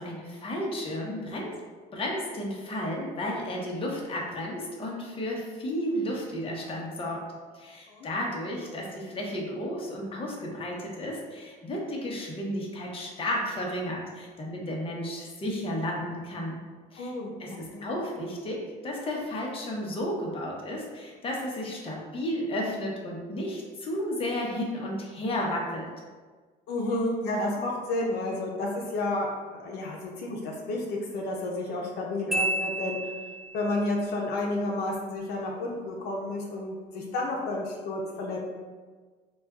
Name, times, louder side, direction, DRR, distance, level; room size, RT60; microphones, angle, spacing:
voice 1, 0.0-1.5 1.9-7.3 7.5-16.6 16.9-17.1 17.4-25.9, left 1 dB, 35° left, -2 dB, 0.9 m, -33 dB
voice 2, 17.0-17.9 26.7-33.1 33.5-38.4, left 2 dB, 75° left, -2 dB, 0.6 m, -31 dB
Marimba xylophone, 32.3-33.7, right 2 dB, ahead, 0.6 m, -30 dB
4.1 x 2.3 x 3.5 m, 1.4 s
cardioid pair, 110°, 17 cm